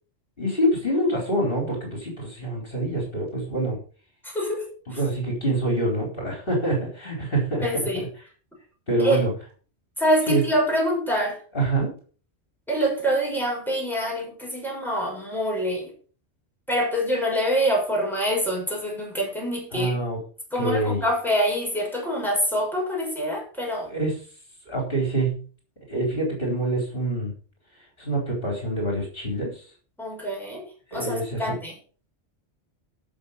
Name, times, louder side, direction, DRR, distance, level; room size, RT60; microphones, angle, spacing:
voice 1, 0.4-3.8 4.9-8.1 8.9-9.3 10.3-10.4 11.5-11.9 19.7-20.2 20.5-21.0 23.9-24.2 24.7-25.5 25.9-27.3 28.0-29.6 30.9-31.6, right 1 dB, 50° left, -1 dB, 4.3 m, -26 dB
voice 2, 4.2-5.0 7.6-8.1 9.0-9.2 10.0-11.4 12.7-15.9 16.7-19.9 20.5-23.9 30.0-30.6 30.9-31.7, equal, ahead, -2 dB, 5.9 m, -25 dB
12.5 x 6.9 x 5.6 m, 0.39 s
omnidirectional pair, 1.2 m